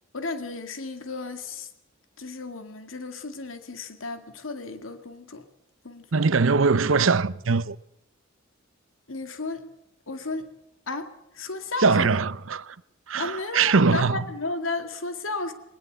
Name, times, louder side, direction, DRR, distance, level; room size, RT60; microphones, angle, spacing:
voice 1, 0.1-1.7 2.2-5.5 5.8-6.3 9.1-9.6 10.1-10.5 10.9-12.2 13.2-15.5, left 3 dB, 85° left, 2.1 m, -33 dB
voice 2, 6.1-7.8 11.8-12.8 13.1-14.2, right 4 dB, 75° right, 0.8 m, -21 dB
20.5 x 20.5 x 8.0 m
head